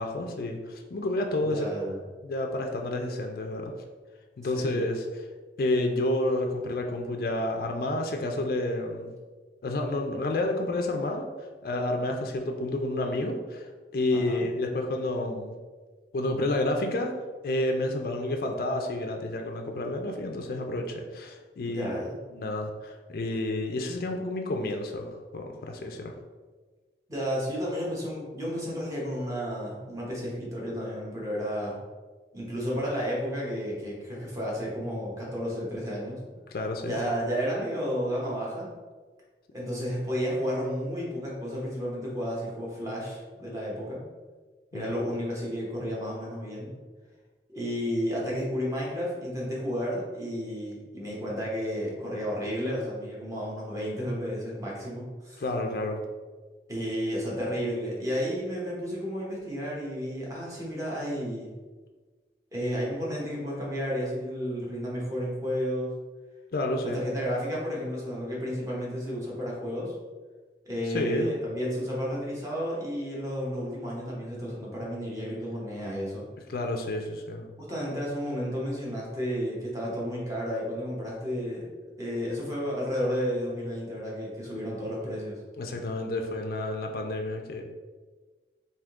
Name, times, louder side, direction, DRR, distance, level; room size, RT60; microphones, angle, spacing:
voice 1, 0.0-1.7 2.2-3.7 4.4-5.3 5.6-9.1 9.6-15.5 16.1-17.1 17.4-21.9 22.3-26.1 36.5-37.0 44.7-44.8 55.4-56.0 66.5-67.0 70.9-71.3 76.5-77.5 85.6-87.6, left 1 dB, 55° left, 3 dB, 0.4 m, -30 dB
voice 2, 1.4-2.0 4.4-4.8 14.1-14.4 21.7-22.1 27.1-31.8 32.3-36.2 36.8-38.7 39.5-44.0 44.7-46.7 47.5-55.4 56.7-61.5 62.5-65.9 66.8-69.9 70.6-76.2 77.6-81.7 82.0-85.4, equal, 20° right, -5 dB, 0.9 m, -32 dB
3.6 x 2.7 x 3.5 m, 1.4 s
head